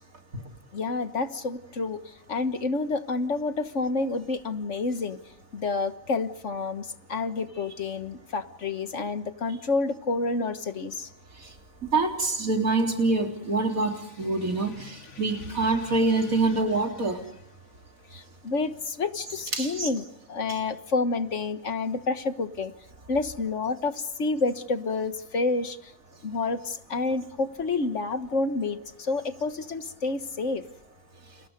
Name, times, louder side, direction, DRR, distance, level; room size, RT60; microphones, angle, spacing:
voice 1, 0.7-5.2 5.5-11.1 14.8-15.2 15.9-16.0 18.1-22.7 23.1-25.9 26.2-30.7, left 3 dB, 60° left, 10 dB, 1.7 m, -29 dB
voice 2, 11.9-17.2 19.5-19.9, right 3 dB, 80° right, 3 dB, 3.8 m, -25 dB
30.0 x 30.0 x 5.3 m, 0.79 s
omnidirectional pair, 1.4 m